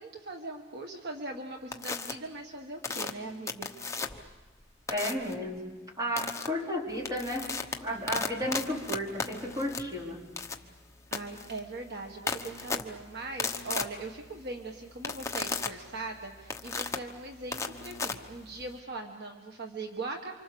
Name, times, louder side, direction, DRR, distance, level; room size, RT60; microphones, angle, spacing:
voice 1, 0.0-3.7 11.1-20.4, right 2 dB, 55° right, 3 dB, 1.6 m, -40 dB
sound 1, 1.7-2.1 2.8-4.3 4.9-5.3 6.2-6.5 6.9-18.8, left 4 dB, 15° left, 1.1 m, -36 dB
voice 2, 4.9-5.6 6.0-7.5 7.8-10.2, equal, 20° right, -1 dB, 4.3 m, -33 dB
28.5 x 26.0 x 7.0 m, 1.2 s
head